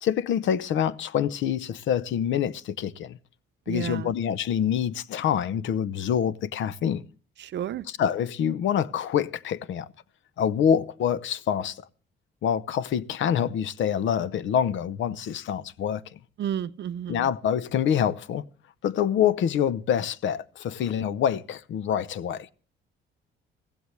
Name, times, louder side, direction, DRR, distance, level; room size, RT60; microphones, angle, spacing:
voice 1, 0.0-3.2 3.7-7.0 7.9-9.9 10.4-11.9 12.4-16.2 17.1-18.5 18.8-22.5, left 9 dB, 75° left, 0.8 m, -26 dB
voice 2, 3.7-4.1 7.4-7.9 16.4-17.3, right 9 dB, 60° right, 0.7 m, -31 dB
15.5 x 15.0 x 3.2 m
cardioid pair, 90°, 20 cm